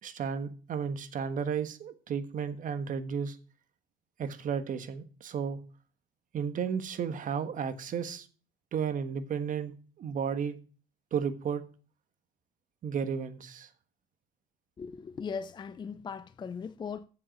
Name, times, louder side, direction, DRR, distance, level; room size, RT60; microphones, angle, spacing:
voice 1, 0.0-3.4 4.2-5.6 6.3-8.3 8.7-10.5 11.1-11.6 12.8-13.7, right 7 dB, 50° right, 1.4 m, -33 dB
voice 2, 14.8-17.1, left 6 dB, 25° left, 0.5 m, -38 dB
7.7 x 7.3 x 8.1 m
cardioid pair, 110°, 17 cm